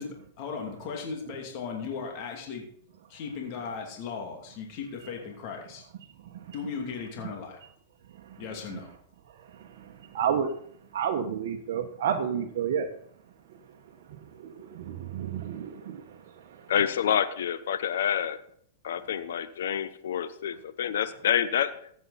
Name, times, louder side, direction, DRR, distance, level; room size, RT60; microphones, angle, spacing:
voice 1, 0.0-2.6 3.1-5.8 6.5-7.6 8.4-8.9, left 5 dB, 50° left, 1 dB, 2.7 m, -37 dB
voice 2, 9.4-10.5 10.9-12.9 13.5-13.6 14.1-16.7, right 8 dB, 65° right, 1 dB, 1.2 m, -32 dB
voice 3, 16.7-18.4 18.8-21.7, left 9 dB, 80° left, 12 dB, 0.8 m, -27 dB
15.0 x 8.4 x 4.2 m, 0.64 s
hypercardioid pair, 130°, 0 cm